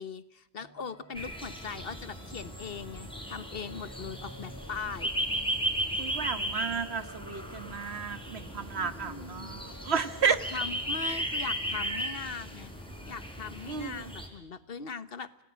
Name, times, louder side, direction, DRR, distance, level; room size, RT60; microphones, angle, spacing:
voice 1, 0.0-5.1 8.7-9.5 10.3-12.7 13.1-15.4, left 5 dB, 65° left, 14 dB, 1.4 m, -40 dB
sound 1, 0.6-10.9, equal, 15° right, 8.1 m, -53 dB
sound 2, 1.1-14.3, equal, 5° left, 4.6 m, -36 dB
voice 2, 6.0-10.4 13.7-14.1, right 6 dB, 80° right, 12 dB, 1.6 m, -32 dB
28.0 x 18.0 x 8.8 m, 0.87 s
omnidirectional pair, 1.1 m